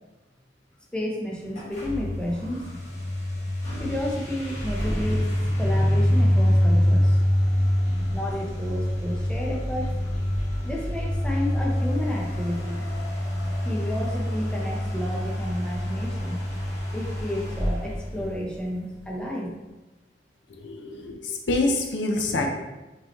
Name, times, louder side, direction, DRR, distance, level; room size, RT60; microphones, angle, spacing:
voice 1, 0.9-2.7 3.8-7.2 8.1-10.2 10.6-12.9 13.6-16.5 16.9-19.5, left 1 dB, 5° left, -3 dB, 0.6 m, -31 dB
sound 1, 1.5-19.0, equal, 40° left, 1.1 m, -26 dB
voice 2, 20.5-22.5, left 2 dB, 85° left, 3 dB, 0.6 m, -26 dB
5.3 x 3.0 x 3.0 m, 1.1 s
head